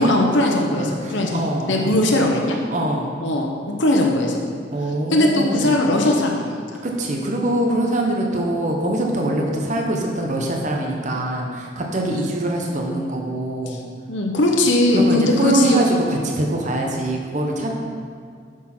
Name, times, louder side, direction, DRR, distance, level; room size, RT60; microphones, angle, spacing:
voice 1, 0.0-1.4 1.7-2.6 3.2-3.5 3.8-4.4 5.1-6.8 12.0-12.3 13.7-13.8 14.1-15.8, left 1 dB, 85° left, 0 dB, 0.9 m, -19 dB
voice 2, 0.8-1.9 2.7-3.1 4.7-5.8 6.8-13.8 14.9-17.7, right 1 dB, 40° right, 0 dB, 0.9 m, -23 dB
8.4 x 6.2 x 4.4 m, 2.1 s
head